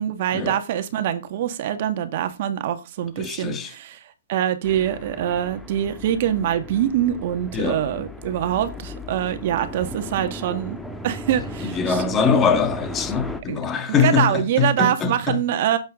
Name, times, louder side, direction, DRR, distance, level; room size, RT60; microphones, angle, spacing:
voice 1, 0.0-4.0 4.3-10.8 11.0-12.0 13.5-13.6 14.0-15.8, right 11 dB, 45° right, 1.6 m, -24 dB
voice 2, 3.2-3.7 7.5-7.8 11.6-15.4, left 6 dB, 20° left, 1.6 m, -22 dB
sound 1, 4.6-13.4, left 1 dB, 5° left, 1.4 m, -36 dB
11.5 x 8.3 x 3.6 m
hypercardioid pair, 140°, 0 cm